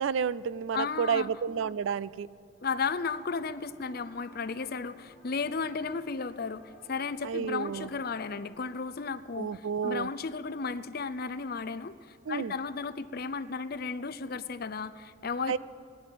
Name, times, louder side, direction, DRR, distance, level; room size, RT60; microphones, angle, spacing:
voice 1, 0.0-2.3 7.2-7.9 9.4-10.1 12.3-12.5 15.5-15.6, right 6 dB, 70° right, 19 dB, 0.4 m, -30 dB
voice 2, 0.7-1.3 2.6-15.6, left 4 dB, 50° left, 12 dB, 0.6 m, -34 dB
sound 1, 3.1-8.7, right 1 dB, 25° right, 3.4 m, -56 dB
17.5 x 11.0 x 6.9 m, 2.4 s
head